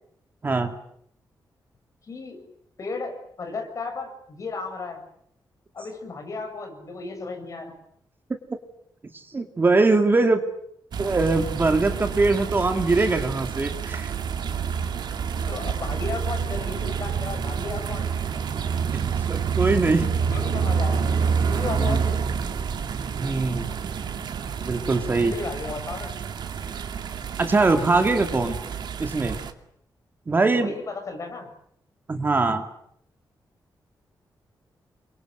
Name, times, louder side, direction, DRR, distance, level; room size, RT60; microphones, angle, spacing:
voice 1, 0.4-0.7 9.3-10.4 11.0-14.1 18.9-20.1 21.8-22.0 23.2-23.7 24.6-25.3 27.4-28.6 29.0-29.4 30.3-30.7 32.1-32.6, right 3 dB, 25° right, 6 dB, 2.5 m, -22 dB
voice 2, 2.1-2.4 2.8-5.0 5.7-7.8 15.5-18.1 20.3-21.2 21.4-22.2 25.2-26.1 30.5-31.5, left 3 dB, 45° left, 5 dB, 7.3 m, -34 dB
sound 1, 10.9-29.5, right 6 dB, 70° right, 2.5 m, -28 dB
29.5 x 24.0 x 7.9 m, 0.69 s
wide cardioid pair, 165°, 8 cm